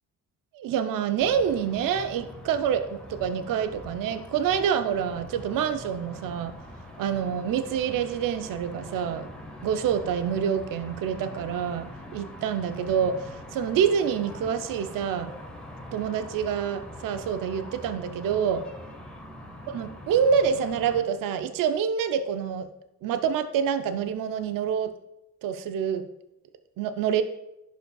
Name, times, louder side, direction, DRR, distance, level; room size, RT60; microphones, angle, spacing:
voice 1, 0.5-6.5 7.0-9.3 9.6-15.3 15.9-18.6 19.7-22.7 23.0-24.9 25.4-26.0 26.8-27.2, right 7 dB, 60° right, 10 dB, 0.6 m, -27 dB
sound 1, 1.2-21.0, left 1 dB, 5° left, 1.5 m, -43 dB
11.0 x 5.3 x 2.3 m, 0.85 s
supercardioid pair, 65°, 37 cm